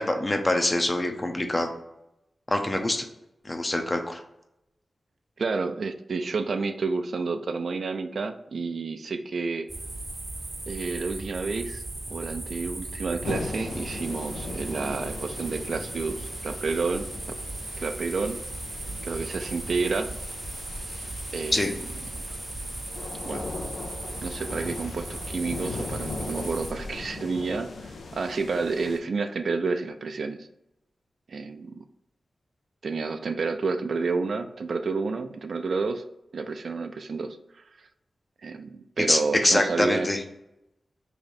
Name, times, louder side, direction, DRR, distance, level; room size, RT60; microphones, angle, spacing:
voice 1, 0.0-1.7 2.5-3.1 3.4-4.2 21.5-21.7 39.1-40.2, left 1 dB, 30° left, 5 dB, 0.6 m, -24 dB
voice 2, 5.4-9.7 10.7-11.8 12.1-17.1 17.8-18.4 19.0-20.1 21.3-21.8 23.3-23.5 24.2-30.5 31.3-31.8 32.8-36.0 36.3-37.6 38.4-40.1, right 4 dB, 70° right, 8 dB, 0.3 m, -30 dB
sound 1, 9.7-26.7, right 2 dB, 35° right, 0.6 m, -37 dB
sound 2, 13.2-29.0, left 3 dB, 85° left, 0.4 m, -39 dB
3.1 x 2.7 x 4.0 m, 0.84 s
cardioid pair, 60°, 0 cm